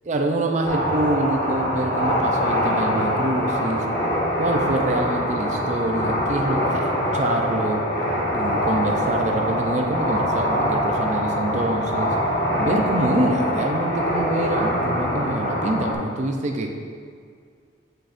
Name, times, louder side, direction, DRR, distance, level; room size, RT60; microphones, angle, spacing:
voice 1, 0.1-3.9 4.4-7.8 8.3-12.2 12.6-16.7, right 2 dB, 40° right, 2 dB, 0.5 m, -25 dB
sound 1, 0.6-15.9, equal, 55° left, 1.4 m, -24 dB
8.8 x 6.3 x 2.5 m, 2.2 s
head